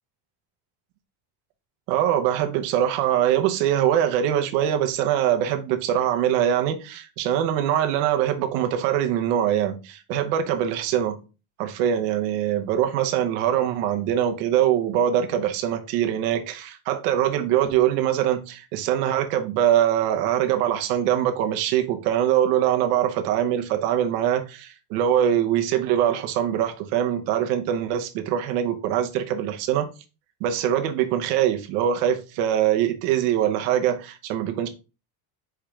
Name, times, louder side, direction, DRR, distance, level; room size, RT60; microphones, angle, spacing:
voice 1, 1.9-11.2 11.6-29.9 30.4-34.7, right 10 dB, 70° right, 0.9 m, -23 dB
4.7 x 3.2 x 3.5 m
cardioid pair, 175°, 48 cm